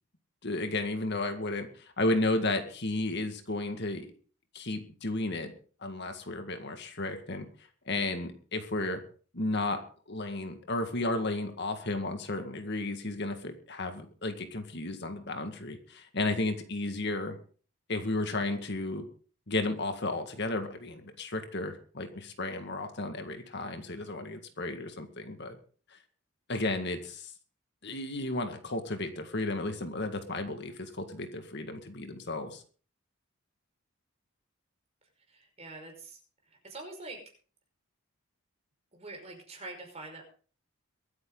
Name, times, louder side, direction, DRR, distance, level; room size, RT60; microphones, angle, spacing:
voice 1, 0.4-4.1 4.5-5.5 5.8-7.5 7.9-9.0 9.3-9.8 10.1-17.4 17.9-19.1 19.5-25.6 25.9-26.0 26.5-27.3 27.8-32.6, left 2 dB, 55° left, 6 dB, 1.9 m, -33 dB
voice 2, 35.3-36.2 36.5-37.2 38.9-40.2, right 2 dB, 30° right, 2 dB, 5.4 m, -45 dB
23.5 x 9.5 x 3.9 m, 0.40 s
head